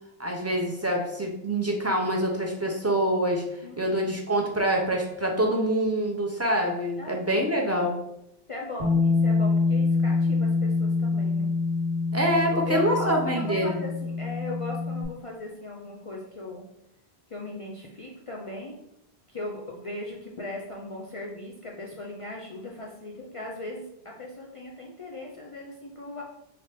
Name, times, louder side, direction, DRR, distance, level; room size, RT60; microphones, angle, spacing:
voice 1, 0.2-3.4 3.8-7.9 12.1-13.8, right 1 dB, 20° right, 0 dB, 0.4 m, -25 dB
voice 2, 3.6-4.1 7.0-7.4 8.5-11.5 12.4-16.7 17.3-18.8 19.3-26.2, left 2 dB, 45° left, -2 dB, 0.4 m, -38 dB
Bass guitar, 8.8-15.0, left 4 dB, 85° right, 1.4 m, -25 dB
4.3 x 2.6 x 3.3 m, 0.82 s
omnidirectional pair, 1.1 m